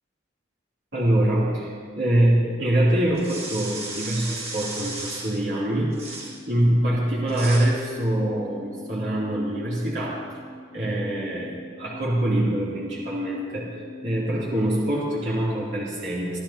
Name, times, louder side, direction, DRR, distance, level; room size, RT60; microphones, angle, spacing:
voice 1, 0.9-5.9 6.5-10.3 10.7-13.7 14.0-16.4, right 1 dB, 60° right, -7 dB, 3.1 m, -24 dB
sound 1, 3.1-5.4 5.9-6.4 7.3-7.8, right 2 dB, 30° right, 1.7 m, -35 dB
sound 2, 5.1-14.7, left 2 dB, 60° left, 3.5 m, -44 dB
25.5 x 13.0 x 2.9 m, 2.2 s
head